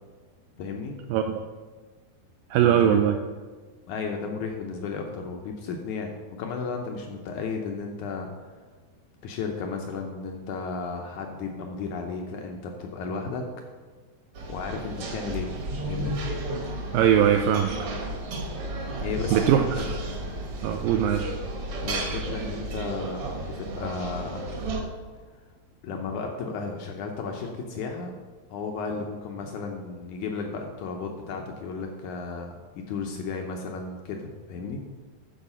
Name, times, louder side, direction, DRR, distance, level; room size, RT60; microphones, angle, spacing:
voice 1, 0.6-0.9 2.6-3.0 3.9-8.3 9.2-13.4 14.5-15.5 15.8-16.2 19.0-19.9 21.8-24.5 25.8-28.2 28.5-32.6 32.9-34.8, left 4 dB, 85° left, 2 dB, 1.7 m, -34 dB
voice 2, 1.1-1.4 2.5-3.1 16.9-17.7 19.3-19.6 20.6-21.3, right 10 dB, 85° right, 6 dB, 2.0 m, -21 dB
sound 1, 14.3-24.8, right 2 dB, 55° right, 1.6 m, -33 dB
12.5 x 4.9 x 5.6 m, 1.4 s
omnidirectional pair, 4.5 m